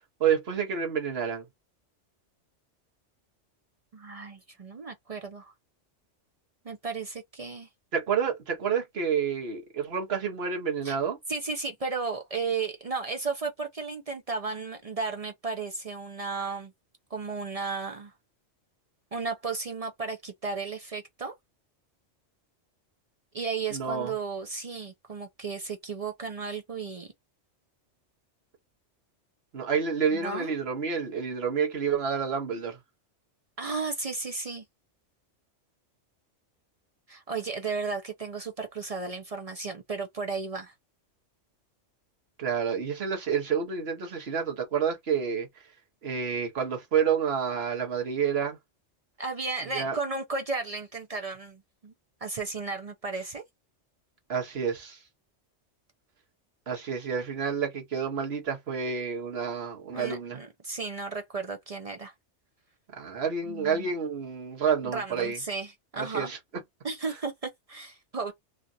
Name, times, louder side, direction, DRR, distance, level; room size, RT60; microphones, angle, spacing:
voice 1, 0.2-1.4 7.9-11.2 23.7-24.1 29.5-32.8 42.4-45.5 46.0-48.6 49.7-50.0 54.3-55.0 56.7-60.4 63.0-65.4 66.0-66.4, right 7 dB, 60° right, 1.4 m, -29 dB
voice 2, 3.9-5.5 6.6-7.7 10.8-11.0 11.3-16.7 17.1-18.1 19.1-21.3 23.3-27.1 30.1-30.5 33.6-34.6 37.1-40.7 49.2-51.9 52.2-53.4 59.9-62.1 63.4-63.9 64.8-66.3 66.8-68.3, right 4 dB, 45° right, 0.5 m, -34 dB
3.1 x 2.4 x 2.6 m
omnidirectional pair, 1.2 m